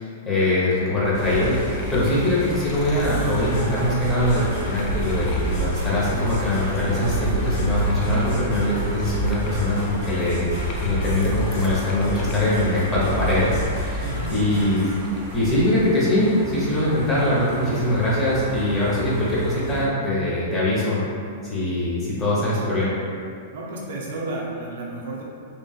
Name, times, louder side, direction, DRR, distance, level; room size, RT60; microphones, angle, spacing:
voice 1, 0.0-1.6 1.9-10.5 10.8-14.9 15.3-21.0 21.4-22.9, left 1 dB, 20° left, -8 dB, 1.0 m, -22 dB
sound 1, 0.9-7.0 7.3-14.3 14.7-15.4, left 1 dB, 35° left, 0.3 m, -33 dB
sound 2, 1.1-19.9, right 1 dB, 35° right, 0.8 m, -32 dB
sound 3, 3.0-15.0, right 2 dB, 80° left, 1.2 m, -32 dB
voice 2, 14.0-14.4 23.5-25.2, right 2 dB, 70° right, -3 dB, 0.5 m, -32 dB
3.0 x 2.5 x 2.4 m, 2.4 s
hypercardioid pair, 115°, 0 cm